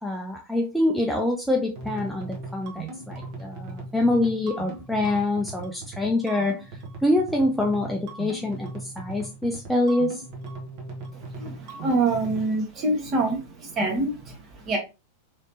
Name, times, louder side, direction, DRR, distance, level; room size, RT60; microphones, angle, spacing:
voice 1, 0.0-6.6 7.0-10.2, left 1 dB, ahead, 0 dB, 0.5 m, -25 dB
sound 1, 1.8-12.4, right 3 dB, 45° right, 0.9 m, -39 dB
voice 2, 11.1-14.8, right 2 dB, 30° right, 1 dB, 1.2 m, -26 dB
3.2 x 2.9 x 2.7 m, 0.27 s
figure-of-eight pair, 90°, 0 cm